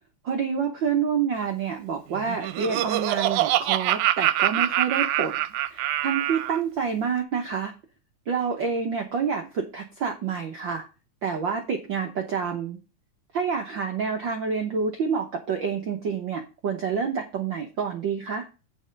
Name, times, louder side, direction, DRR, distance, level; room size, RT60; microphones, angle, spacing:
voice 1, 0.2-5.3 5.7-7.7 8.3-10.9 11.2-12.8 13.3-18.5, right 6 dB, 65° right, 3 dB, 1.1 m, -28 dB
Laughter, 2.1-6.6, right 14 dB, 85° right, 2.0 m, -25 dB
8.8 x 4.9 x 5.1 m, 0.32 s
omnidirectional pair, 3.5 m